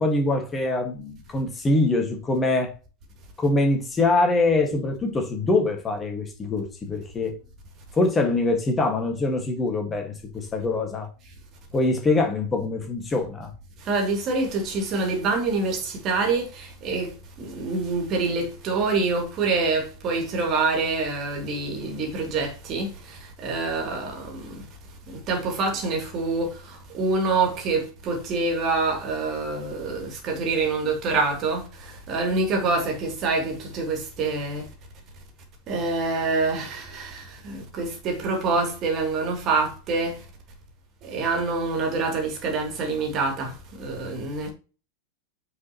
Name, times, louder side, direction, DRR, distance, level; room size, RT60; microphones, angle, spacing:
voice 1, 0.0-2.7 3.4-7.3 7.9-11.1 11.7-13.5, left 2 dB, 15° left, 1.7 m, -24 dB
voice 2, 13.9-17.1 17.4-22.9 23.4-24.4 25.3-26.5 26.9-31.6 32.1-34.6 35.7-40.1 41.0-43.5 43.8-44.5, right 3 dB, 35° right, 2.7 m, -26 dB
9.3 x 4.9 x 3.0 m
figure-of-eight pair, 90°, 0 cm